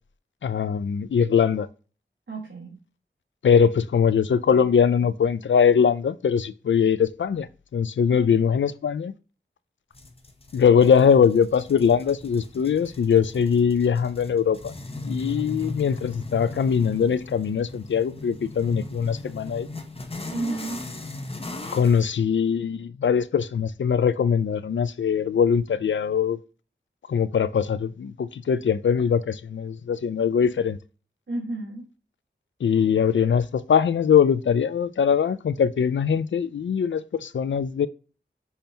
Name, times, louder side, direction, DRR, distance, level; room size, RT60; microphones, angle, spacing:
voice 1, 0.4-1.7 3.4-7.5 7.7-9.1 10.5-14.7 15.0-19.7 21.7-26.4 27.1-30.8 32.6-37.9, left 7 dB, 75° left, 0.4 m, -21 dB
voice 2, 2.3-2.8 8.1-8.5 15.3-15.8 20.3-20.8 31.3-31.8, right 2 dB, 70° right, 1.4 m, -33 dB
sound 1, 9.9-22.1, left 2 dB, 30° left, 0.7 m, -37 dB
5.6 x 3.4 x 2.8 m
wide cardioid pair, 70°, 20 cm